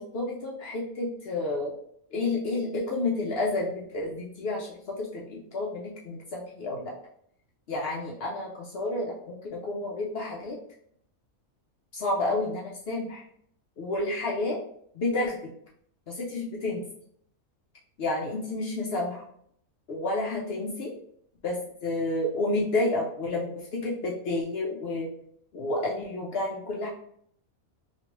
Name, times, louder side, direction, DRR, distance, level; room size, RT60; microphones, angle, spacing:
voice 1, 0.0-1.7 2.1-6.9 7.7-10.6 11.9-13.2 13.8-14.6 14.9-15.4 16.1-16.8 18.0-19.2 19.9-20.9 21.4-25.1 25.5-26.9, left 2 dB, 60° left, -2 dB, 0.6 m, -30 dB
3.1 x 2.5 x 2.9 m, 0.66 s
omnidirectional pair, 1.5 m